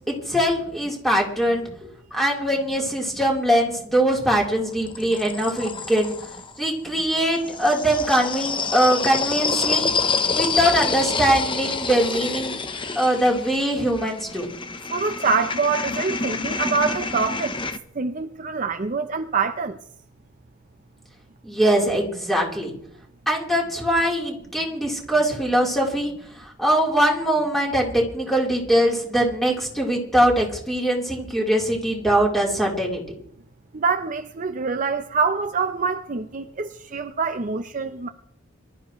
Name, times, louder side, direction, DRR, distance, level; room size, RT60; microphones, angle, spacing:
voice 1, 0.1-6.2 6.6-9.9 10.3-12.6 13.0-14.5 21.4-22.7 23.3-33.0, right 1 dB, ahead, 3.8 m, -22 dB
sound 1, 4.1-6.5 7.4-17.8, left 4 dB, 25° left, 0.9 m, -27 dB
voice 2, 14.9-17.6 18.0-19.8 33.7-38.1, right 5 dB, 40° right, 0.7 m, -25 dB
23.5 x 13.5 x 3.2 m
head